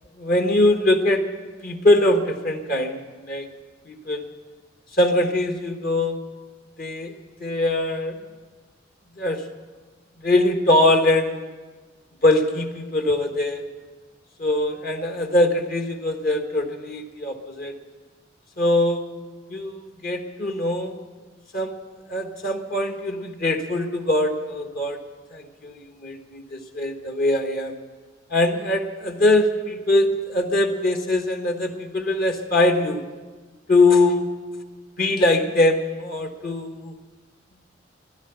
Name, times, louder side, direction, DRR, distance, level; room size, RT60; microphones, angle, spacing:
voice 1, 0.2-1.2 1.6-3.5 3.9-4.2 5.0-6.2 6.8-7.1 7.4-8.2 9.2-9.4 10.2-11.5 12.2-13.6 14.4-17.7 18.6-19.1 19.5-21.0 21.5-21.7 22.1-25.0 25.3-27.7 28.3-33.0 33.7-34.3 35.0-36.9, left 1 dB, 45° left, 4 dB, 1.3 m, -22 dB
14.5 x 12.0 x 8.0 m, 1.3 s
head